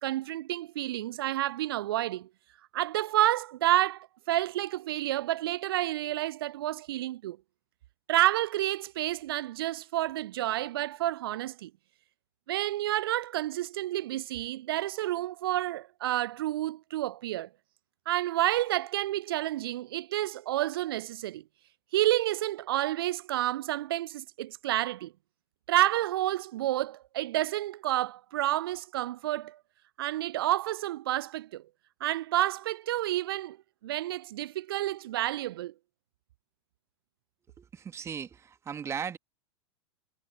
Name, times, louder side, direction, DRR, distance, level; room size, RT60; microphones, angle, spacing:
voice 1, 0.0-2.3 2.7-7.4 8.1-11.7 12.5-17.5 18.1-21.4 21.9-25.1 25.7-29.6 30.0-31.6 32.0-33.6 33.8-35.7, right 15 dB, 50° right, 0.7 m, -29 dB
voice 2, 37.6-39.2, right 7 dB, 20° right, 2.7 m, -37 dB
figure-of-eight pair, 95°, 15 cm